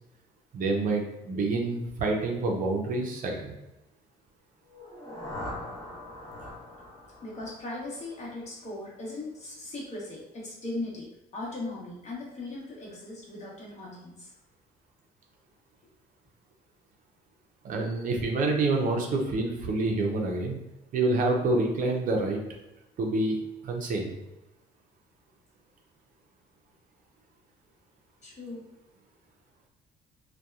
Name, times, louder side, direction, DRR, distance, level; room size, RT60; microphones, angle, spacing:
voice 1, 0.5-3.5 17.6-20.6 20.9-22.4 23.0-23.4 23.6-24.2, right 2 dB, 55° right, 2 dB, 0.5 m, -27 dB
sound 1, 4.6-8.6, left 1 dB, 20° left, 0.9 m, -42 dB
voice 2, 7.2-14.3 28.2-28.6, left 2 dB, 40° left, -4 dB, 1.0 m, -38 dB
2.7 x 2.2 x 2.3 m, 0.96 s
cardioid pair, 110°, 17 cm